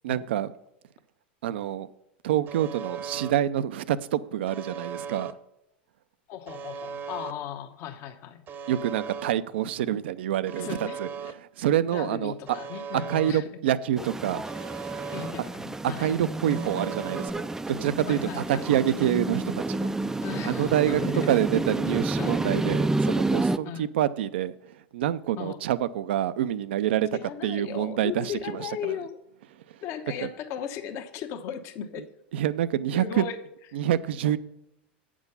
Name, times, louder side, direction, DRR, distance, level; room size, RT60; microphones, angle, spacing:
voice 1, 0.0-0.5 1.4-1.9 2.2-5.3 8.7-12.3 12.9-14.4 15.8-19.9 20.4-21.0 21.3-28.9 29.7-29.8 30.2-30.3 32.3-33.3 33.7-34.4, right 11 dB, 75° right, 15 dB, 0.5 m, -27 dB
Alarm, 2.5-3.3 4.5-5.3 6.5-7.3 8.5-9.3 10.5-11.3 12.5-13.3 14.5-15.3 16.5-17.3, right 6 dB, 35° right, 0.8 m, -38 dB
voice 2, 6.3-8.4 10.6-11.3 11.9-13.5 15.1-16.1 18.1-18.6 20.2-21.3 22.2-22.4 23.6-23.8 25.4-25.6 27.1-29.2 29.8-32.1 32.9-33.4, left 9 dB, 50° left, 7 dB, 1.0 m, -37 dB
sound 1, 14.0-23.6, right 2 dB, 10° right, 0.4 m, -29 dB
8.7 x 6.2 x 5.4 m, 0.83 s
hypercardioid pair, 100°, 6 cm